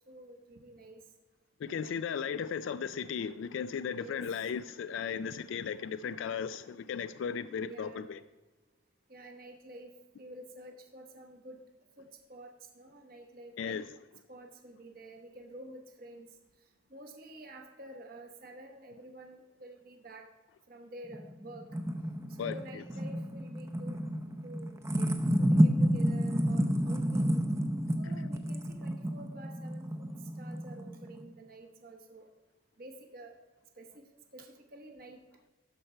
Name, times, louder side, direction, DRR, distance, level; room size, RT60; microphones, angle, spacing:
voice 1, 0.1-1.0 1.7-2.3 4.0-4.3 7.6-8.1 9.1-11.6 12.0-13.9 14.3-16.3 16.9-20.3 20.7-21.7 22.4-24.0 24.4-25.1 25.4-27.4 28.0-30.1 30.4-32.3 32.8-33.3 33.8-34.0 34.3-35.2, right 1 dB, 45° right, 3 dB, 1.0 m, -50 dB
voice 2, 1.6-8.2 13.6-13.8 22.4-22.5, left 7 dB, 70° left, 13 dB, 0.3 m, -36 dB
sound 1, 21.1-31.2, equal, 15° right, 0.6 m, -30 dB
13.0 x 4.5 x 5.5 m, 1.2 s
head